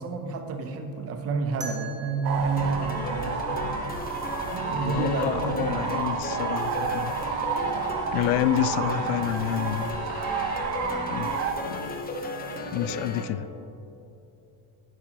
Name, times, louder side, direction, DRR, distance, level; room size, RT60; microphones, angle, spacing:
voice 1, 0.0-3.7 4.5-6.0, right 4 dB, 30° right, 6 dB, 0.8 m, -30 dB
sound 1, 1.6-4.5, right 3 dB, 15° right, 1.3 m, -44 dB
sound 2, 2.2-11.5, right 5 dB, 80° right, 1.2 m, -31 dB
sound 3, 2.6-13.2, left 2 dB, 20° left, 0.9 m, -35 dB
voice 2, 4.8-7.1 8.1-10.0 11.0-11.3 11.6-12.0 12.7-13.5, left 11 dB, 80° left, 14 dB, 0.6 m, -28 dB
11.0 x 9.4 x 3.0 m, 2.8 s
cardioid pair, 130°, 49 cm